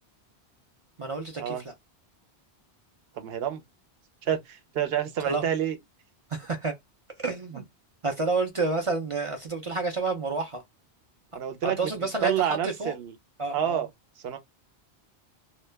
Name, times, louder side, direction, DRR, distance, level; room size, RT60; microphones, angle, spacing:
voice 1, 1.0-1.7 5.2-5.4 6.3-6.8 7.2-7.6 8.0-10.6 11.6-12.3 12.6-12.9 13.4-13.8, right 3 dB, 45° right, 0.4 m, -29 dB
voice 2, 3.1-3.6 4.2-5.8 7.5-7.6 11.3-11.9 12.2-13.1 13.5-13.9 14.2-14.4, right 9 dB, 70° right, 0.8 m, -28 dB
2.2 x 2.1 x 3.2 m
omnidirectional pair, 1.1 m